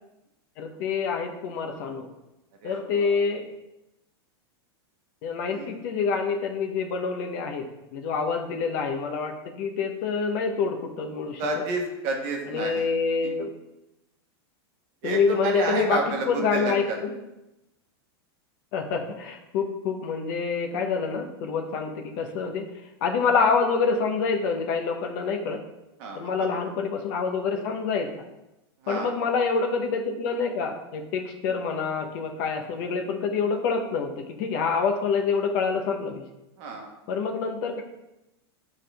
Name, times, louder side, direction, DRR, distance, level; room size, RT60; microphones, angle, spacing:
voice 1, 0.6-2.1 2.6-3.4 5.2-7.6 7.9-11.4 12.5-13.5 15.0-16.0 16.3-17.1 18.7-22.7 23.0-25.6 26.1-28.2 28.9-36.2 37.1-37.8, left 5 dB, 40° left, 3 dB, 0.9 m, -27 dB
voice 2, 2.6-3.1 5.5-5.7 11.4-12.9 13.2-13.3 15.0-17.0 26.0-26.5 28.8-29.1 36.6-36.9, right 3 dB, 40° right, 1 dB, 1.2 m, -30 dB
9.9 x 3.7 x 3.4 m, 0.94 s
supercardioid pair, 170°, 13 cm